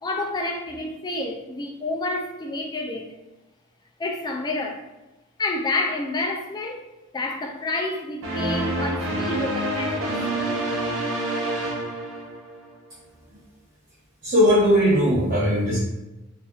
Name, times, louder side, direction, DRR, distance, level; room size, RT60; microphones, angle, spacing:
voice 1, 0.0-3.1 4.0-4.8 5.4-6.8 7.1-10.2, left 2 dB, 20° left, 2 dB, 0.4 m, -29 dB
sound 1, 8.2-12.7, right 1 dB, 75° right, 0.7 m, -27 dB
voice 2, 14.2-15.8, equal, 40° right, -9 dB, 1.0 m, -18 dB
4.2 x 2.5 x 2.4 m, 1.0 s
head